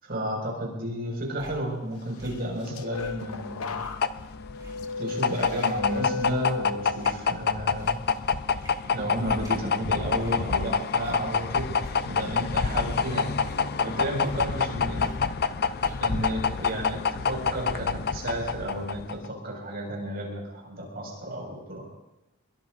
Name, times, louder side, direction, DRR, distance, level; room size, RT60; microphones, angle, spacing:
voice 1, 0.0-3.8 5.0-8.0 8.9-11.7 12.0-13.4 13.8-15.1 16.0-21.8, right 1 dB, 45° right, -1 dB, 5.7 m, -32 dB
sound 1, 1.1-3.5 3.8-7.4 7.8-8.3 8.6-9.9 10.2-10.5 10.9-12.2 12.6-13.9 14.2-16.3 16.6-16.7, right 1 dB, 20° right, 3.9 m, -49 dB
sound 2, 2.3-7.3 7.8-8.2, left 4 dB, 85° left, 0.8 m, -35 dB
sound 3, 3.2-19.3, left 5 dB, 45° left, 0.5 m, -27 dB
24.0 x 22.0 x 2.6 m, 0.97 s
head